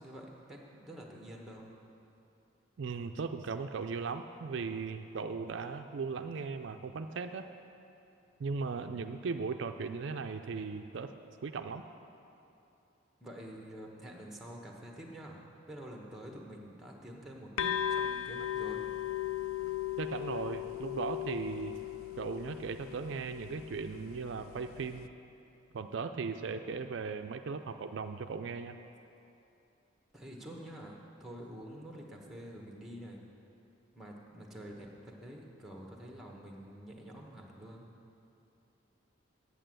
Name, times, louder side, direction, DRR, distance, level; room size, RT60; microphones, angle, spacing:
voice 1, 0.0-1.7 13.2-15.4 15.7-18.8 30.1-33.2 33.9-37.9, equal, ahead, 0 dB, 1.1 m, -47 dB
voice 2, 2.8-7.5 8.4-11.1 11.4-11.8 20.0-21.8 22.2-25.1 25.7-28.8, right 5 dB, 60° right, 7 dB, 0.4 m, -37 dB
sound 1, 17.6-25.1, left 11 dB, 85° left, 0.4 m, -37 dB
9.0 x 8.5 x 7.6 m, 2.8 s
head